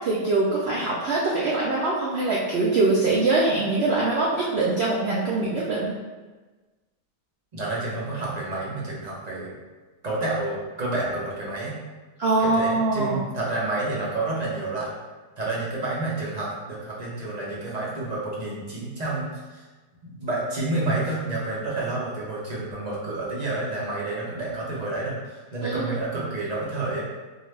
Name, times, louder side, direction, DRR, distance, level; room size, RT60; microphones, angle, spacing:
voice 1, 0.0-5.9 12.2-13.2 25.6-25.7, right 3 dB, 85° right, -4 dB, 0.5 m, -23 dB
voice 2, 7.5-9.6 10.0-11.8 12.4-14.9 15.4-19.7 20.0-27.1, right 2 dB, 40° right, -5 dB, 0.6 m, -29 dB
4.5 x 2.5 x 3.2 m, 1.3 s
omnidirectional pair, 1.8 m